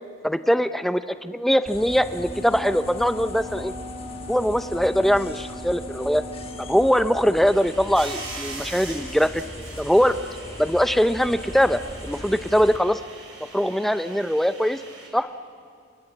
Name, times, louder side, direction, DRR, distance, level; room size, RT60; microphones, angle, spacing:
voice 1, 0.2-3.7 4.3-6.2 6.6-9.4 9.8-10.2 10.6-13.0 13.5-14.8 15.1-15.3, equal, ahead, 10 dB, 0.6 m, -22 dB
sound 1, 1.7-12.8, left 1 dB, 30° left, 1.3 m, -39 dB
Wind instrument woodwind instrument, 1.8-7.0, equal, 50° left, 3.7 m, -39 dB
sound 2, 7.4-15.1, right 3 dB, 90° right, 5.8 m, -41 dB
28.0 x 28.0 x 7.5 m, 2.3 s
head